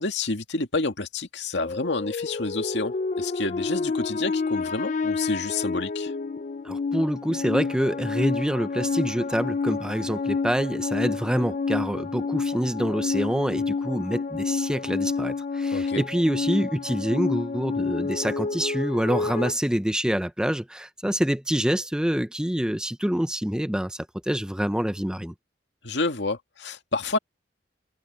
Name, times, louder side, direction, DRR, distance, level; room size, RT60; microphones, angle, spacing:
voice 1, 0.0-6.1 15.7-16.0 25.8-27.2, left 3 dB, 75° left, 2.1 m, -29 dB
sound 1, 1.5-19.5, left 4 dB, 40° left, 0.4 m, -29 dB
voice 2, 6.6-25.3, equal, 5° right, 0.6 m, -26 dB
head